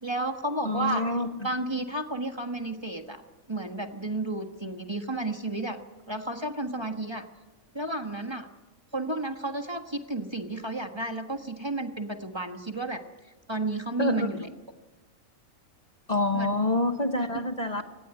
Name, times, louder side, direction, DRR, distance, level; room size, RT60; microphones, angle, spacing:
voice 1, 0.0-1.1 1.4-3.2 3.5-5.8 6.1-7.3 7.7-8.5 8.9-13.0 13.5-14.5 16.3-16.5, right 2 dB, 20° right, 5 dB, 1.5 m, -32 dB
voice 2, 0.6-1.5 14.0-14.3 16.1-17.8, left 2 dB, 30° left, 6 dB, 1.3 m, -27 dB
23.5 x 19.0 x 9.8 m, 1.2 s
omnidirectional pair, 1.4 m